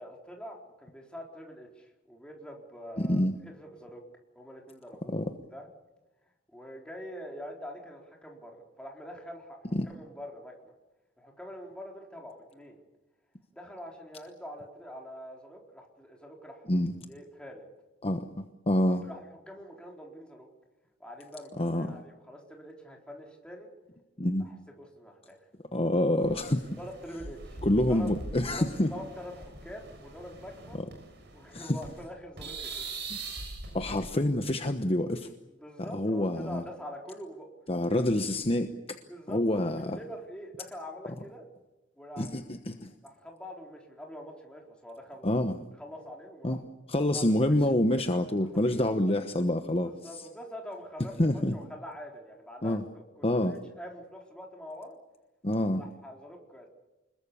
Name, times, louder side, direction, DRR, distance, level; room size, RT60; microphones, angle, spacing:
voice 1, 0.0-4.0 4.4-5.7 6.5-10.6 11.2-12.8 13.5-16.7 17.1-17.6 18.9-20.5 21.0-23.7 24.4-25.4 26.8-27.6 27.9-28.1 28.5-30.8 31.3-33.0 35.6-37.5 37.9-38.0 39.1-41.5 42.0-42.3 43.0-45.4 45.8-46.6 47.0-47.7 48.4-49.1 49.8-55.0 55.7-56.7, equal, 5° left, 0 dB, 4.1 m, -45 dB
voice 2, 3.0-3.3 5.1-5.2 9.7-9.9 16.7-16.9 18.0-19.1 21.6-22.0 24.2-24.4 25.7-26.7 27.6-28.9 31.5-31.8 33.1-33.2 33.7-35.3 35.8-36.6 37.7-39.0 39.3-40.0 42.2-42.9 45.2-45.6 46.4-46.6 46.9-49.9 51.2-51.6 52.6-52.8 53.2-53.6 55.4-55.8, left 1 dB, 30° left, 7 dB, 1.1 m, -27 dB
sound 1, 26.2-32.1 32.4-34.0, right 3 dB, 60° right, 6.2 m, -42 dB
26.0 x 21.5 x 7.0 m, 1.1 s
head